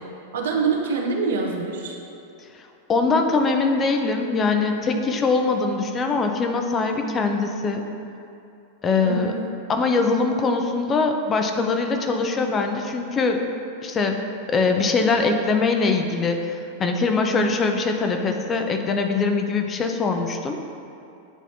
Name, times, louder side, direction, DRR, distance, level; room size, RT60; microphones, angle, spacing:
voice 1, 0.3-2.0 9.0-9.4, right 4 dB, 60° right, 0 dB, 0.7 m, -25 dB
voice 2, 2.9-7.8 8.8-9.3 9.7-13.4 13.8-14.2 14.5-20.6, left 4 dB, 25° left, 5 dB, 0.5 m, -22 dB
9.1 x 4.1 x 2.7 m, 2.7 s
figure-of-eight pair, 90°, 0 cm